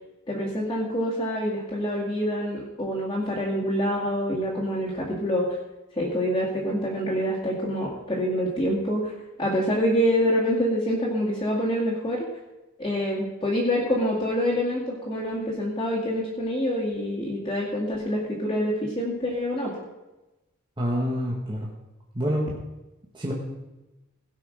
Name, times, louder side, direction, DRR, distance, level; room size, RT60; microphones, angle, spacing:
voice 1, 0.3-5.5 5.9-12.3 12.8-19.9, equal, 20° left, -6 dB, 2.1 m, -26 dB
voice 2, 20.8-21.7 22.1-22.4 23.1-23.3, equal, 25° right, -3 dB, 1.6 m, -26 dB
17.0 x 5.8 x 6.4 m, 1.0 s
head